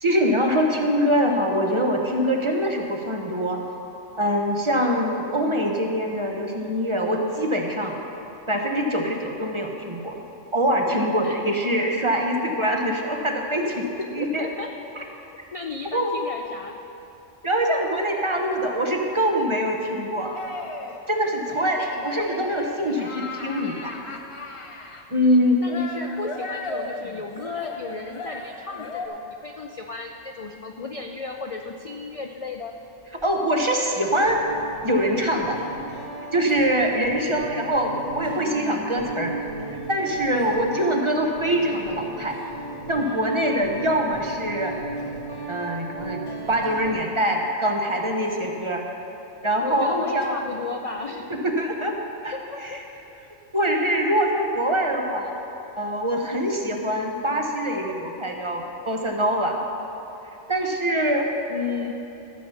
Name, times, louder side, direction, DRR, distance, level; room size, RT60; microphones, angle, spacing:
voice 1, 0.0-3.6 4.2-8.0 8.5-10.2 10.5-13.8 14.1-14.5 15.0-15.1 15.9-16.1 17.4-20.4 21.1-23.9 25.1-25.6 33.2-34.5 34.8-35.6 36.3-39.3 39.9-42.4 42.9-44.8 45.5-48.8 49.4-50.3 51.3-52.0 52.2-52.7 53.5-55.4 55.8-59.6 60.5-61.9, equal, 30° right, 1 dB, 0.8 m, -24 dB
voice 2, 13.6-14.7 15.5-16.8 21.8-21.9 25.6-32.7 49.6-51.3 52.5-52.8, left 4 dB, 60° left, 3 dB, 0.3 m, -34 dB
sound 1, 20.3-21.0 21.5-25.0 25.7-29.1, left 2 dB, 30° left, 0.7 m, -36 dB
Guitar, 33.0-33.2 34.2-46.9, right 3 dB, 55° right, 2.3 m, -35 dB
13.5 x 7.1 x 5.7 m, 2.9 s
omnidirectional pair, 1.3 m